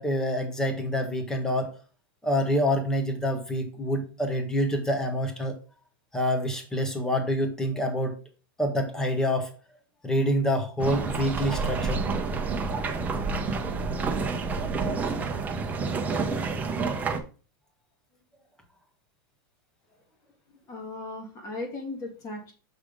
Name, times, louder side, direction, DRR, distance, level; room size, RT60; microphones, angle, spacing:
voice 1, 0.0-1.7 2.2-5.6 6.1-8.2 8.6-9.5 10.0-12.0, equal, 5° left, 4 dB, 1.0 m, -26 dB
sound 1, 10.8-17.2, right 4 dB, 15° right, 0.7 m, -29 dB
voice 2, 20.7-22.5, left 2 dB, 30° left, 2 dB, 2.1 m, -37 dB
6.4 x 3.5 x 5.0 m, 0.36 s
supercardioid pair, 145°, 12 cm